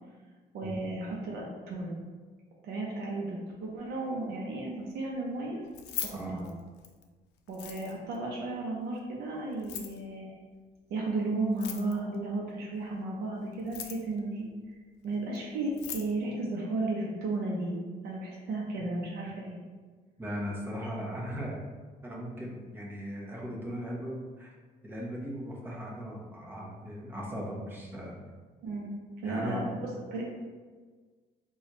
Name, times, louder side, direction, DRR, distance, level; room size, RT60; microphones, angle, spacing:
voice 1, 0.5-2.0 2.6-5.6 6.0-6.5 7.5-10.4 10.9-14.5 15.0-19.6 20.8-20.9 28.6-28.9 29.2-30.2, right 2 dB, 75° right, -3 dB, 0.7 m, -34 dB
Keys jangling, 5.6-7.0 7.5-8.2 9.5-10.0 11.5-12.2 13.5-14.2 15.3-15.4 15.7-16.1, left 10 dB, 85° left, 0.4 m, -40 dB
voice 2, 6.1-6.4 20.2-21.6 22.0-24.5 24.8-28.1 29.2-29.8, equal, 10° right, -3 dB, 0.8 m, -38 dB
4.1 x 2.4 x 3.0 m, 1.4 s
cardioid pair, 110°, 17 cm